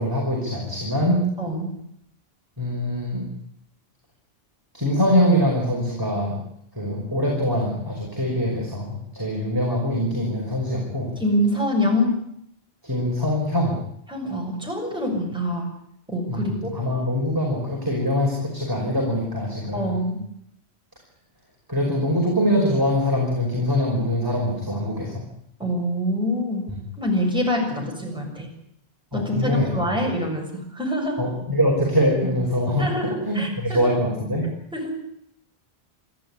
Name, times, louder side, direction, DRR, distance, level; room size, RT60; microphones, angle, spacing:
voice 1, 0.0-1.3 2.6-3.3 4.7-6.4 6.7-11.1 12.8-13.8 16.3-20.0 21.7-25.2 29.1-30.0 31.2-34.5, equal, 20° right, -2 dB, 5.4 m, -23 dB
voice 2, 1.4-1.7 11.2-12.2 14.1-15.7 16.1-16.7 19.7-20.2 25.6-26.6 27.0-28.5 29.1-31.2 32.8-33.9 34.7-35.0, left 1 dB, 5° right, 0 dB, 6.8 m, -25 dB
27.0 x 13.5 x 9.9 m, 0.72 s
omnidirectional pair, 1.1 m